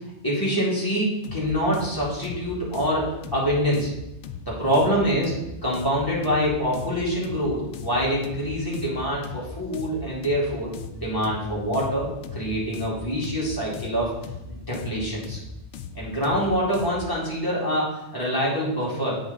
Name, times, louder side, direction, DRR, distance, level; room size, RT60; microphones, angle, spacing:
voice 1, 0.2-3.9 4.5-12.1 12.3-14.1 14.5-15.4 15.9-19.2, equal, 20° left, -7 dB, 2.4 m, -25 dB
sound 1, 1.2-17.1, left 5 dB, 85° left, 0.9 m, -39 dB
8.4 x 3.9 x 3.9 m, 0.91 s
omnidirectional pair, 1.2 m